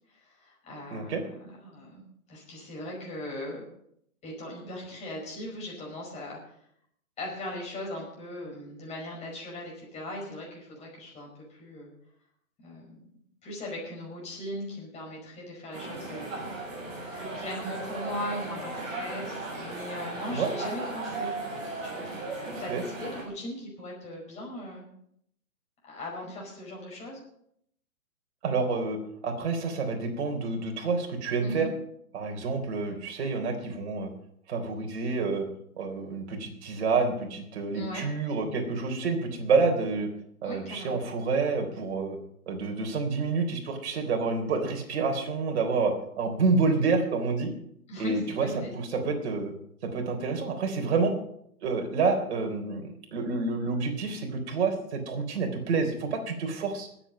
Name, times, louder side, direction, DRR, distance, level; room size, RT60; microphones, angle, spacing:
voice 1, 0.1-2.0 2.3-3.6 4.2-6.5 7.2-11.9 12.6-13.0 13.4-16.3 17.1-21.3 21.8-24.8 25.8-27.2 31.4-31.7 37.7-38.1 40.4-41.0 47.9-48.7, left 1 dB, 15° left, -2 dB, 5.3 m, -39 dB
voice 2, 0.9-1.2 20.3-20.5 22.7-22.8 28.4-31.7 32.1-34.1 34.5-35.5 35.8-40.1 40.4-42.2 42.5-47.5 48.0-48.5 48.7-49.5 49.8-51.1 51.6-56.9, right 4 dB, 45° right, 3 dB, 3.8 m, -28 dB
sound 1, 15.7-23.2, right 2 dB, 5° right, 0.4 m, -36 dB
21.0 x 8.3 x 5.3 m, 0.71 s
hypercardioid pair, 145°, 45 cm